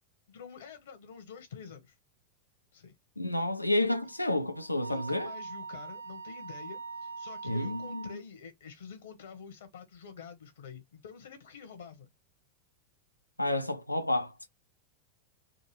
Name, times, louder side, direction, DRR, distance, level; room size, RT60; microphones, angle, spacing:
voice 1, 0.3-1.9 2.7-2.9 4.9-12.1, left 6 dB, 60° left, 0.9 m, -47 dB
voice 2, 3.2-5.3 7.4-8.2 13.4-14.3, left 1 dB, 85° left, 0.4 m, -30 dB
Wind instrument woodwind instrument, 3.8-8.2, right 4 dB, 85° right, 0.5 m, -43 dB
3.7 x 2.5 x 3.0 m
figure-of-eight pair, 90°, 0 cm